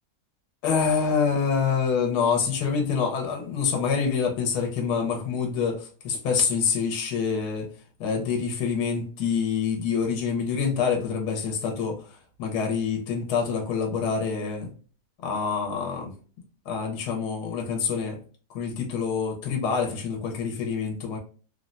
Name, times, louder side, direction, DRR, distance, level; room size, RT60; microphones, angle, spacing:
voice 1, 0.6-7.7 8.0-14.7 15.2-16.1 16.7-18.2 18.5-21.2, left 6 dB, 75° left, 1 dB, 1.2 m, -26 dB
3.3 x 2.1 x 2.4 m, 0.38 s
omnidirectional pair, 1.8 m